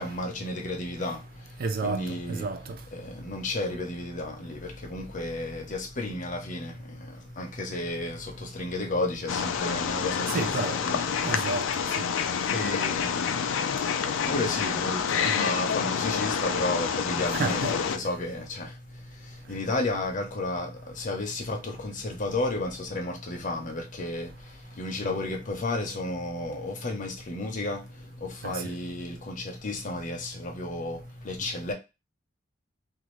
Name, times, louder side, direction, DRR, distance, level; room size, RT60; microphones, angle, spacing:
voice 1, 0.0-2.5 2.9-11.1 12.5-31.7, left 2 dB, 40° left, 0.7 m, -33 dB
voice 2, 1.6-2.8 10.3-10.8 11.2-11.7 12.0-12.1 17.3-17.8 25.0-25.1 28.4-28.7, right 4 dB, 50° right, 0.4 m, -31 dB
Wild animals, 9.3-18.0, left 7 dB, 75° left, 0.4 m, -28 dB
2.6 x 2.5 x 3.1 m
head